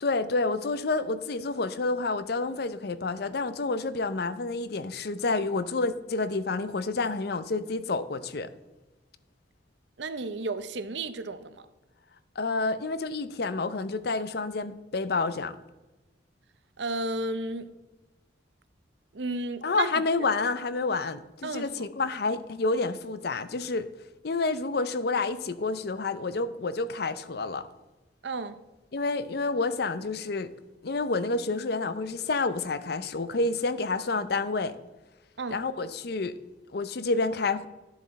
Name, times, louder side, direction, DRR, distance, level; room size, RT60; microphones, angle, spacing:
voice 1, 0.0-8.5 12.4-15.5 19.6-23.9 24.2-27.7 28.9-30.5 30.8-34.7 35.5-36.4 36.7-37.7, left 3 dB, 55° left, 0.6 m, -29 dB
voice 2, 10.0-11.7 16.8-17.7 19.1-19.9 21.4-21.9 28.2-28.6 35.4-35.6, right 2 dB, 70° right, 0.7 m, -33 dB
11.5 x 7.2 x 4.2 m
head